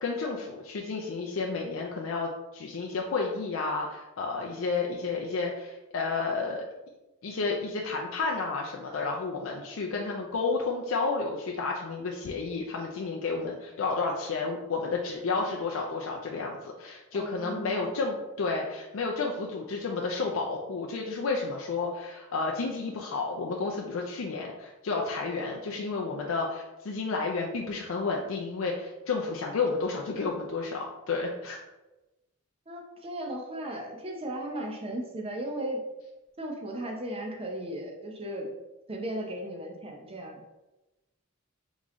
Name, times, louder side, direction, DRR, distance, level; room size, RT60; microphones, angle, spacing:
voice 1, 0.0-6.6 7.2-31.6, left 4 dB, 80° left, -1 dB, 0.5 m, -31 dB
voice 2, 17.1-17.9 32.7-35.8 36.4-38.5 38.9-40.4, right 1 dB, 30° right, 1 dB, 0.7 m, -36 dB
3.8 x 3.1 x 3.6 m, 1.0 s
head